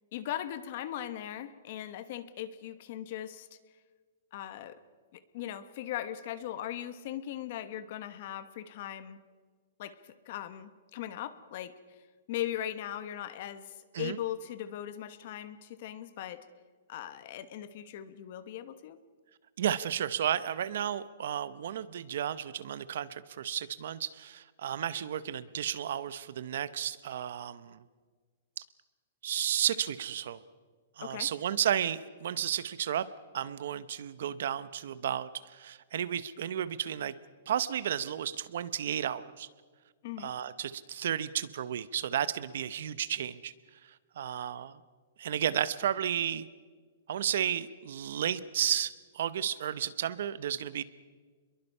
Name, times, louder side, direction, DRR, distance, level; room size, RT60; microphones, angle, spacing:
voice 1, 0.1-3.6 4.3-4.8 5.1-9.2 9.8-11.8 12.3-16.4 16.9-19.0 31.0-31.3 40.0-40.3, left 11 dB, 35° left, 13 dB, 1.1 m, -39 dB
voice 2, 19.6-27.8 29.2-30.4 31.0-33.1 33.3-37.1 37.5-39.5 40.2-43.5 44.2-44.8 45.2-46.5 47.1-50.8, right 10 dB, 50° right, 15 dB, 0.9 m, -33 dB
29.0 x 22.5 x 5.5 m, 1.5 s
hypercardioid pair, 180°, 0 cm